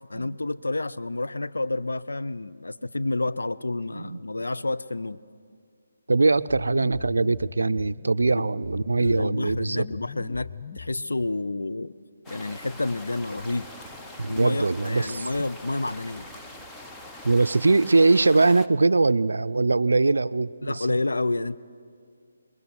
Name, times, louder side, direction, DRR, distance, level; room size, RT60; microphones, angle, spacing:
voice 1, 0.1-5.2 8.3-8.4 9.0-11.9 12.3-13.7 14.3-16.3 20.6-21.6, left 2 dB, 75° left, 12 dB, 0.6 m, -29 dB
voice 2, 6.1-9.9 14.2-15.3 17.2-20.9, right 3 dB, 70° right, 14 dB, 0.5 m, -22 dB
sound 1, 6.4-11.4, left 7 dB, 35° left, 0.5 m, -41 dB
sound 2, 12.3-18.7, left 2 dB, 10° left, 0.8 m, -43 dB
Waves surf, 12.4-17.6, right 6 dB, 15° right, 1.0 m, -52 dB
26.5 x 22.0 x 6.1 m, 2.2 s
figure-of-eight pair, 145°, 0 cm